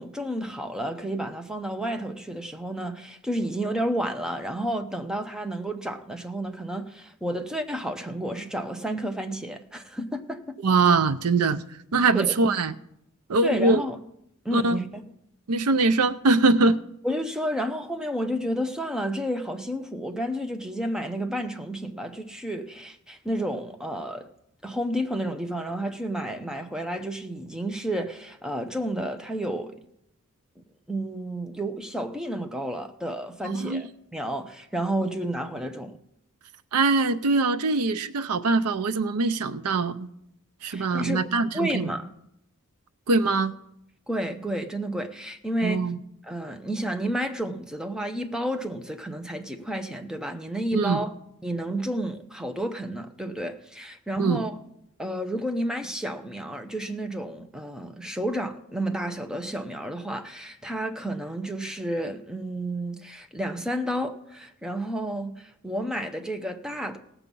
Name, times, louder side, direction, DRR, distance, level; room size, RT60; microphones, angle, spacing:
voice 1, 0.0-10.6 12.1-12.5 13.4-14.0 14.4-15.0 17.0-24.3 24.6-29.8 30.9-36.0 40.6-41.2 41.5-42.1 44.1-45.9 46.2-51.1 51.4-54.6 55.0-67.0, right 1 dB, 5° right, 0.7 m, -31 dB
voice 2, 10.6-11.6 11.9-12.8 13.3-13.8 14.5-14.8 15.5-16.8 33.6-33.8 36.7-40.1 40.6-41.9 43.1-43.5 45.6-46.0 50.7-51.0 54.2-54.4, right 3 dB, 90° right, 0.6 m, -22 dB
17.5 x 7.2 x 5.4 m
head